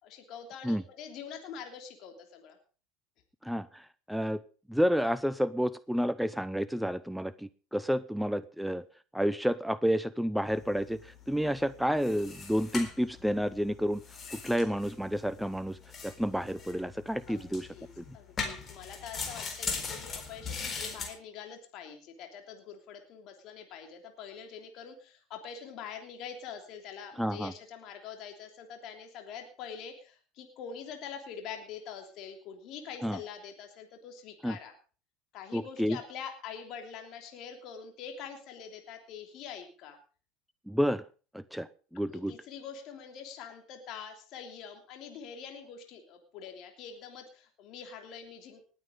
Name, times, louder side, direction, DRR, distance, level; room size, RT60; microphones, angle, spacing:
voice 1, 0.0-2.6 17.3-17.9 18.1-34.7 35.3-40.0 42.1-48.6, left 7 dB, 55° left, 4 dB, 3.2 m, -45 dB
voice 2, 3.4-4.4 4.7-8.8 9.1-14.0 14.3-15.8 16.0-17.7 18.0-18.2 27.2-27.5 33.0-33.2 34.4-34.6 35.5-36.0 40.7-41.0 41.3-41.7 41.9-42.3, equal, ahead, 14 dB, 0.6 m, -30 dB
sound 1, 10.5-21.1, left 5 dB, 35° left, 4.1 m, -41 dB
19.5 x 8.8 x 5.1 m, 0.38 s
hypercardioid pair, 85°, 0 cm